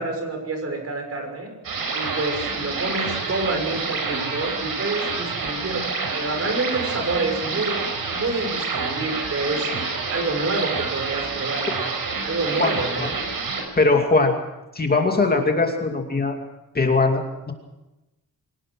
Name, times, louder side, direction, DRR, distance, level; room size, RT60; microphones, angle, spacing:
voice 1, 0.0-1.5 1.9-5.8 6.1-7.8 8.1-13.1, right 3 dB, 45° right, 4 dB, 6.5 m, -28 dB
sound 1, 1.6-13.6, right 4 dB, 75° right, 5.7 m, -28 dB
voice 2, 13.8-14.3 14.7-16.3 16.7-17.5, left 3 dB, 25° left, 2 dB, 2.5 m, -20 dB
25.5 x 18.0 x 6.3 m, 0.98 s
wide cardioid pair, 170°, 35 cm